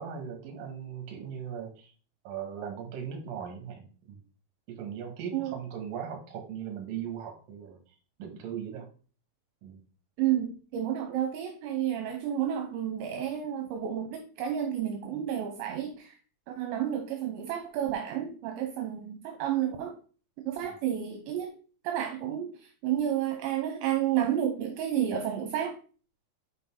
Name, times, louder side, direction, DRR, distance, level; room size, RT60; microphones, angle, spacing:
voice 1, 0.0-1.9 2.2-4.2 4.7-7.8 8.2-8.9 9.6-9.8 20.6-20.7, right 8 dB, 60° right, 2.7 m, -39 dB
voice 2, 10.2-16.2 16.5-19.9 20.5-21.6 21.8-22.5 22.8-25.7, right 10 dB, 75° right, 3.0 m, -31 dB
8.7 x 5.3 x 3.7 m
omnidirectional pair, 5.6 m